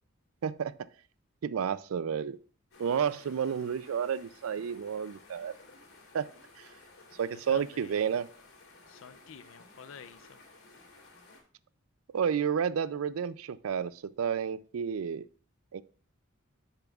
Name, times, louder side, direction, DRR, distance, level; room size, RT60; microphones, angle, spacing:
voice 1, 0.4-0.7 1.4-2.4 2.8-5.6 6.1-6.3 6.6-6.7 7.1-8.3 12.1-15.3 15.7-15.8, right 7 dB, 85° right, 17 dB, 0.4 m, -31 dB
sound 1, 2.7-11.4, left 3 dB, 80° left, 3.2 m, -56 dB
voice 2, 7.3-8.2 8.9-10.4, left 6 dB, 65° left, 13 dB, 0.5 m, -50 dB
9.9 x 6.7 x 2.4 m, 0.43 s
head